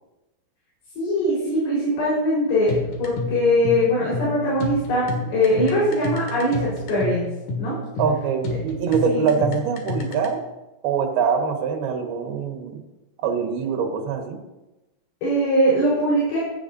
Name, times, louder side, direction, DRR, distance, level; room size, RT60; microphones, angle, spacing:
voice 1, 1.0-7.3 7.6-7.7 9.0-9.2 15.2-16.4, equal, 75° left, -7 dB, 6.5 m, -21 dB
sound 1, 2.7-10.3, left 2 dB, 60° left, 3.4 m, -29 dB
voice 2, 8.0-10.4 10.8-12.8 13.2-14.4, right 6 dB, 80° right, 3 dB, 3.3 m, -23 dB
16.5 x 14.5 x 2.7 m, 1.0 s
omnidirectional pair, 4.4 m